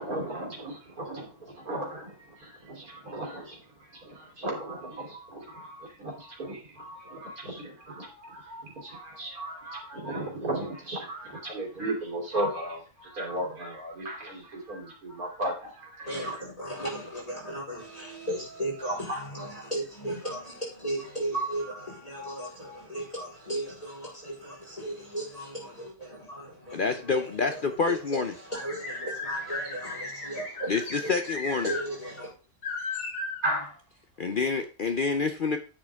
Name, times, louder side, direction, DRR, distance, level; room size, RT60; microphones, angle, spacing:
voice 1, 0.0-16.4 18.9-19.2 21.3-22.8 33.4-33.8, right 1 dB, 65° right, 3.8 m, -36 dB
voice 2, 16.1-31.1 31.6-32.3, right 1 dB, 20° left, 4.3 m, -36 dB
voice 3, 26.7-28.3 30.7-31.7 34.2-35.6, left 4 dB, 55° left, 0.6 m, -27 dB
sound 1, 28.5-31.8 32.2-32.3 32.6-33.4, left 3 dB, 85° left, 3.4 m, -36 dB
9.8 x 7.5 x 3.5 m
omnidirectional pair, 1.7 m